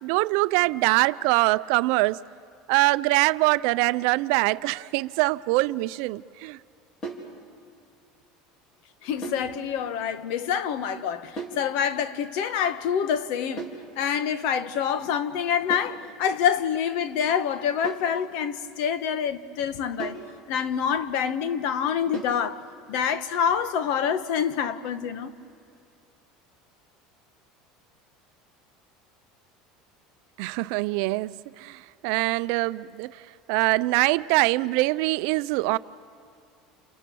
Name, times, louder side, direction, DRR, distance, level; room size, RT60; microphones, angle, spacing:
voice 1, 0.0-2.2 2.7-6.6 30.4-33.2 33.5-35.8, right 21 dB, 70° right, 0.5 m, -23 dB
sound 1, 7.0-7.3 9.2-9.5 11.4-11.7 13.6-13.9 15.7-16.0 17.8-18.2 20.0-20.3 22.1-22.4, right 3 dB, 30° left, 4.0 m, -36 dB
voice 2, 9.0-13.7 14.0-20.2 20.5-22.6 22.9-25.3, left 8 dB, 65° left, 1.2 m, -26 dB
29.5 x 27.0 x 7.0 m
supercardioid pair, 140°, 2 cm